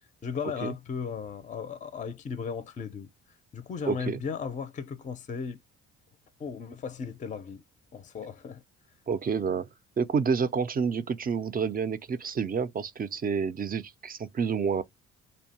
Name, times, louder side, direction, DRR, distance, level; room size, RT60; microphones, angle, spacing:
voice 1, 0.2-3.1 3.5-5.6 6.4-7.6 7.9-8.6, left 6 dB, 25° left, 0.5 m, -36 dB
voice 2, 3.8-4.2 9.1-9.7 10.0-14.8, right 6 dB, 30° right, 0.4 m, -29 dB
2.6 x 2.1 x 2.8 m
cardioid pair, 90°, 30 cm